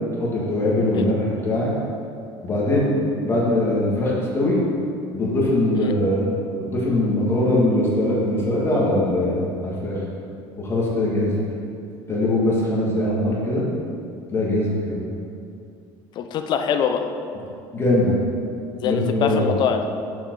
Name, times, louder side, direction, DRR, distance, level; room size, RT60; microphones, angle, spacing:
voice 1, 0.2-1.7 2.4-2.9 3.2-4.6 5.1-6.2 6.5-10.0 10.6-11.3 12.1-13.6 14.3-15.0 17.7-18.2 18.8-19.5, left 1 dB, 25° left, -5 dB, 2.2 m, -21 dB
voice 2, 16.2-17.1 18.8-19.9, left 7 dB, 45° left, 6 dB, 0.7 m, -24 dB
7.4 x 7.2 x 4.8 m, 2.5 s
cardioid pair, 140°, 10 cm